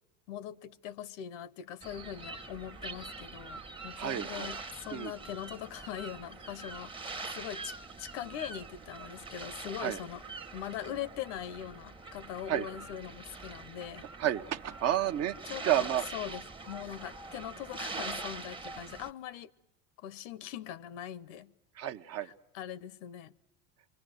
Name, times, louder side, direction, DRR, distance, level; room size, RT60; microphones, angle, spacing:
voice 1, 0.3-10.2 10.5-14.0 15.5-19.5 20.0-21.5 22.2-23.3, left 10 dB, 80° left, 0.9 m, -42 dB
sound 1, 1.8-19.1, right 3 dB, 15° right, 0.9 m, -44 dB
voice 2, 4.0-4.5 4.9-5.1 9.8-10.0 12.5-12.7 14.2-15.4 15.6-16.0 21.8-22.3, right 12 dB, 45° right, 0.8 m, -30 dB
27.0 x 23.5 x 7.7 m
supercardioid pair, 125°, 37 cm